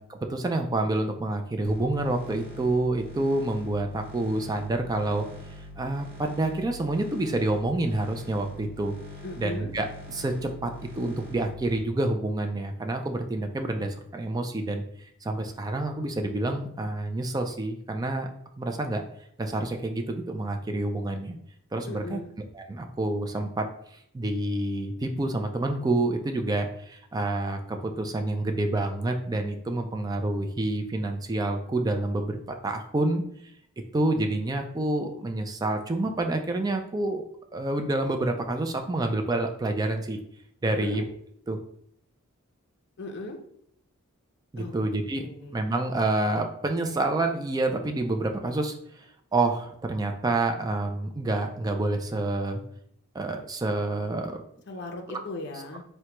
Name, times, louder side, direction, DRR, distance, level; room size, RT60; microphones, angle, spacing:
voice 1, 0.0-5.3 5.8-8.9 9.4-14.8 15.2-18.3 18.6-19.0 19.4-21.4 21.7-22.2 22.5-23.7 24.1-33.2 33.9-37.2 37.5-40.2 40.6-41.0 41.5-41.6 44.5-45.3 45.5-49.1 49.3-52.6 53.1-54.4 55.1-55.2, right 2 dB, 20° right, 5 dB, 0.3 m, -28 dB
sound 1, 1.6-11.8, left 1 dB, 55° right, 1.2 m, -44 dB
voice 2, 9.2-9.7 21.9-22.3 40.6-41.0 43.0-43.4 44.6-44.7 45.2-45.6 54.7-55.8, left 2 dB, 55° left, 3 dB, 0.5 m, -37 dB
4.4 x 2.2 x 2.9 m, 0.69 s
head